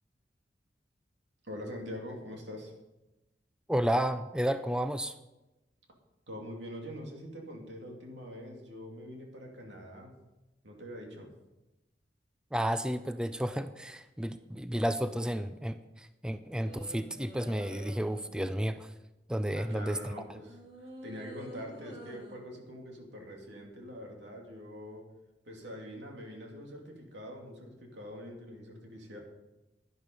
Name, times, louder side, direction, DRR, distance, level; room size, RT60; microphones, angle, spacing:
voice 1, 1.4-2.7 6.3-10.1 10.6-11.3 19.5-25.0 25.5-29.2, equal, 90° right, 1 dB, 2.7 m, -44 dB
voice 2, 3.7-5.2 12.5-18.9 19.3-20.1, equal, 5° right, 10 dB, 0.4 m, -32 dB
sound 1, 16.7-18.5 20.4-22.4 23.4-23.6, right 1 dB, 30° right, 3.1 m, -49 dB
11.5 x 11.0 x 5.4 m, 1.0 s
head